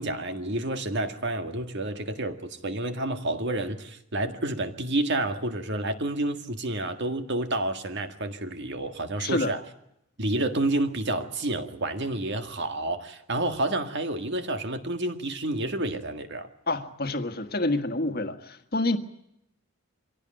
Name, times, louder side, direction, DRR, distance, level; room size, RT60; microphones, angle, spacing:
voice 1, 0.0-9.6 10.2-16.5, right 1 dB, 50° right, 1.9 m, -29 dB
voice 2, 9.2-9.5 16.7-19.0, left 2 dB, 45° left, 1.6 m, -27 dB
24.5 x 17.0 x 8.9 m
head